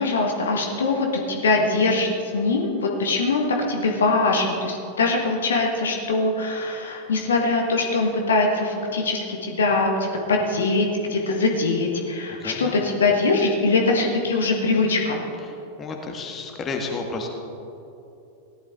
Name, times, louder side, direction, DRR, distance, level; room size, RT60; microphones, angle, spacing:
voice 1, 0.0-15.2, left 3 dB, 65° left, 1 dB, 1.4 m, -22 dB
voice 2, 12.4-12.8 15.8-17.3, left 3 dB, 25° left, 2 dB, 1.6 m, -31 dB
17.0 x 11.0 x 3.7 m, 2.8 s
figure-of-eight pair, 90°, 0 cm